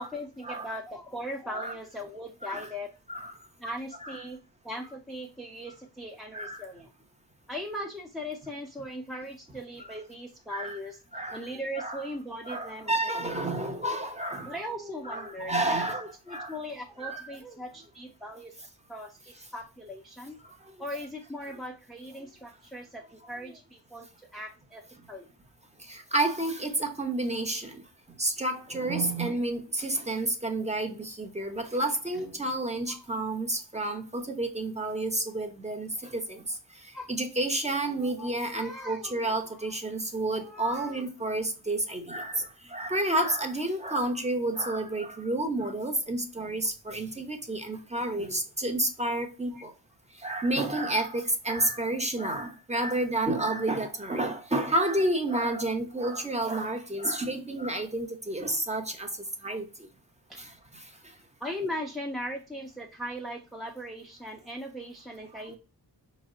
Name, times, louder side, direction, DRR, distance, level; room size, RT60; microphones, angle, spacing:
voice 1, 0.0-2.9 3.6-4.4 4.6-6.9 7.5-11.0 11.3-13.3 13.7-14.0 14.4-18.6 18.9-20.4 20.8-25.3 27.3-27.4 28.7-29.4 31.7-31.9 32.9-33.2 36.9-37.1 37.9-39.7 40.3-41.1 42.6-42.8 49.5-49.6 60.3-60.4 61.4-65.6, equal, ahead, 0.4 m, -39 dB
voice 2, 12.5-14.5 15.1-16.0 16.3-16.5 17.0-17.2 25.9-27.8 28.2-36.4 37.1-49.7 50.2-59.1 59.4-59.6 60.4-60.5, right 2 dB, 15° right, 0.8 m, -30 dB
4.6 x 2.1 x 3.6 m
wide cardioid pair, 110°, 42 cm